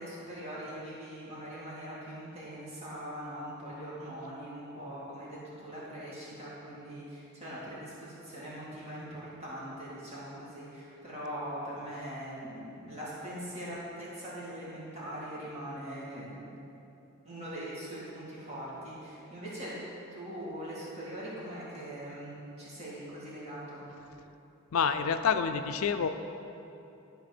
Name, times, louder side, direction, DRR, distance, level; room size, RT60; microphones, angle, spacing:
voice 1, 0.0-16.5 17.2-19.8 20.1-22.3 22.6-23.8, equal, 30° right, -8 dB, 2.1 m, -41 dB
voice 2, 24.7-26.1, left 6 dB, 70° left, 9 dB, 0.4 m, -27 dB
12.0 x 4.2 x 6.0 m, 2.9 s
head